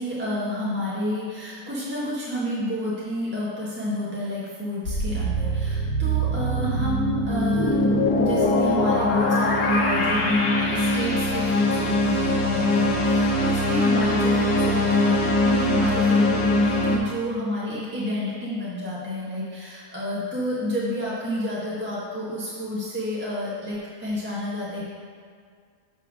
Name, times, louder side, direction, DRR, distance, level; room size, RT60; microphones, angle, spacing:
voice 1, 0.0-7.8 8.2-24.8, left 1 dB, 10° right, -8 dB, 1.2 m, -30 dB
sound 1, 4.9-17.0, left 1 dB, 85° left, 1.5 m, -22 dB
7.8 x 3.5 x 6.0 m, 2.1 s
omnidirectional pair, 1.6 m